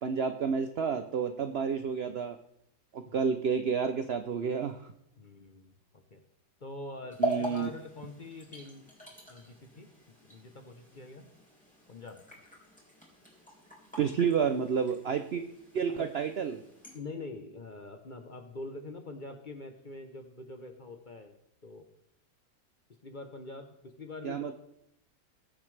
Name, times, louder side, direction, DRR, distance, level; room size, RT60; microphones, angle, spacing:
voice 1, 0.0-2.4 2.9-4.8 7.2-7.7 14.0-15.4 15.7-16.6 24.2-24.5, right 6 dB, 80° right, 8 dB, 0.5 m, -30 dB
voice 2, 5.2-6.2 6.6-8.9 9.3-9.9 10.2-11.3 11.9-12.2 15.9-16.1 16.9-21.4 21.6-21.9 23.0-24.5, left 2 dB, 40° left, 6 dB, 0.8 m, -44 dB
sound 1, 7.1-17.0, right 1 dB, 5° left, 3.3 m, -41 dB
20.0 x 7.2 x 3.3 m, 0.77 s
omnidirectional pair, 1.8 m